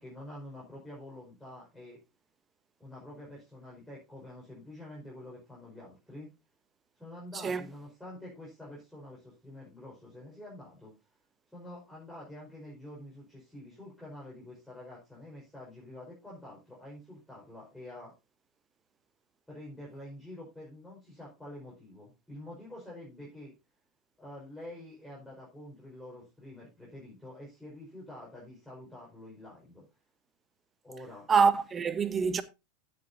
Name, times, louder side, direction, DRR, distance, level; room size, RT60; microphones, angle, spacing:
voice 1, 0.0-2.0 2.8-6.3 7.0-10.9 11.5-18.1 19.5-23.5 24.2-29.9 30.8-31.3, left 1 dB, 5° left, 5.1 m, -47 dB
voice 2, 31.3-32.4, right 5 dB, 25° right, 1.1 m, -25 dB
16.0 x 7.0 x 2.7 m
figure-of-eight pair, 85°, 0 cm